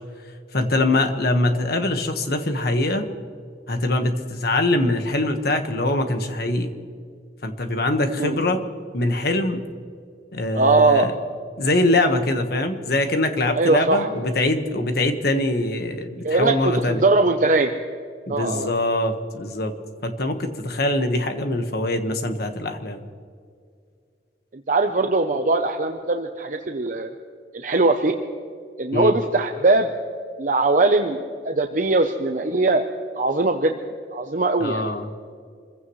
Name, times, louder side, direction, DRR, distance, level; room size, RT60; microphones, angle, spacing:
voice 1, 0.5-3.1 3.7-6.7 7.4-8.6 8.9-9.7 10.3-11.1 11.6-17.0 18.3-19.7 20.0-23.0 28.9-29.1 34.6-35.1, left 2 dB, 60° left, 6 dB, 1.5 m, -23 dB
voice 2, 10.5-11.1 13.6-14.1 16.2-17.7 18.3-18.7 24.7-27.1 27.5-28.1 28.8-29.9 30.4-32.9 33.2-33.8 34.1-34.9, right 2 dB, 45° right, 5 dB, 0.8 m, -20 dB
26.0 x 15.5 x 3.2 m, 2.2 s
head